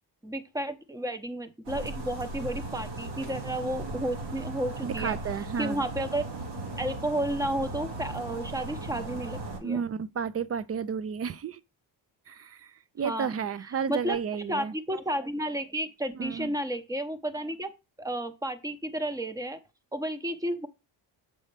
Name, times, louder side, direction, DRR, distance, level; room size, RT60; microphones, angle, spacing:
voice 1, 0.2-5.2 5.6-6.3 6.8-9.8 13.0-13.3 13.9-17.7 18.0-19.6 19.9-20.7, right 1 dB, 10° right, 0.8 m, -32 dB
sound 1, 1.6-9.6, right 2 dB, 85° right, 2.2 m, -37 dB
voice 2, 4.8-5.9 9.6-11.6 12.3-14.7 16.2-16.5, right 7 dB, 35° right, 0.5 m, -32 dB
7.1 x 5.4 x 3.3 m
cardioid pair, 105°, 43 cm